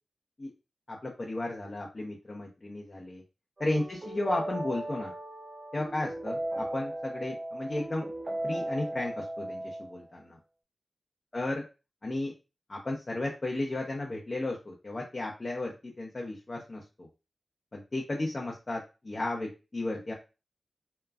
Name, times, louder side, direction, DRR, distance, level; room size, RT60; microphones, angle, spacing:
voice 1, 0.9-3.2 3.6-5.1 5.7-8.0 8.4-10.4 11.3-11.6 12.0-12.3 12.7-17.1 17.7-20.1, left 2 dB, 40° left, -2 dB, 0.7 m, -34 dB
sound 1, 3.6-10.0, right 1 dB, 45° right, 0.5 m, -36 dB
2.9 x 2.3 x 2.3 m, 0.30 s
wide cardioid pair, 70°, 0 cm